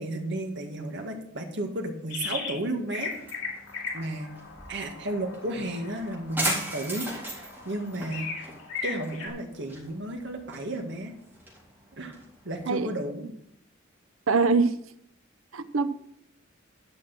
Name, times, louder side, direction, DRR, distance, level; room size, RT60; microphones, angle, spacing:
voice 1, 0.0-3.1 3.9-4.3 4.7-8.3 8.8-11.1 12.0-13.2, right 1 dB, 60° right, 3 dB, 1.9 m, -33 dB
sound 1, 2.1-2.6 2.9-9.3, left 5 dB, 80° left, 2.6 m, -38 dB
sound 2, 3.0-12.7, right 1 dB, 10° right, 3.9 m, -38 dB
voice 2, 14.3-14.8 15.5-15.9, right 4 dB, 90° right, 12 dB, 0.8 m, -23 dB
11.5 x 6.2 x 6.1 m, 0.71 s
head